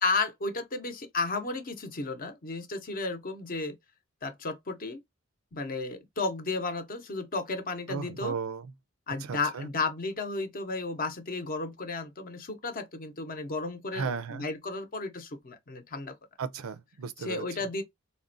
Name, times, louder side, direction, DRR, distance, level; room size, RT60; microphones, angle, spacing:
voice 1, 0.0-3.8 4.2-5.0 5.5-8.3 9.1-16.1 17.3-17.8, left 3 dB, 45° left, 0.7 m, -33 dB
voice 2, 7.9-8.7 9.2-9.7 13.9-14.4 16.4-17.5, right 5 dB, 75° right, 0.4 m, -35 dB
3.6 x 2.1 x 2.5 m
head